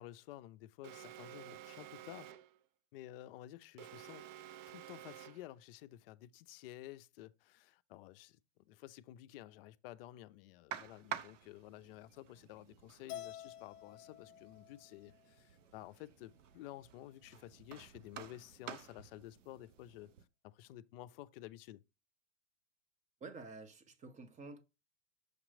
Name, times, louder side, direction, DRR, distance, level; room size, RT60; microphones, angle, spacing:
voice 1, 0.0-2.3 2.9-4.2 4.7-8.4 8.7-20.1 20.4-21.8, left 14 dB, 45° left, 0.5 m, -52 dB
Alarm, 0.8-2.6 3.8-5.6, right 12 dB, 35° right, 0.4 m, -52 dB
sound 1, 10.7-20.2, right 9 dB, 70° right, 0.8 m, -51 dB
Keyboard (musical), 13.1-15.4, left 11 dB, 30° left, 1.0 m, -50 dB
voice 2, 23.2-24.6, right 3 dB, 20° right, 0.9 m, -50 dB
6.6 x 3.0 x 5.0 m
hypercardioid pair, 105°, 39 cm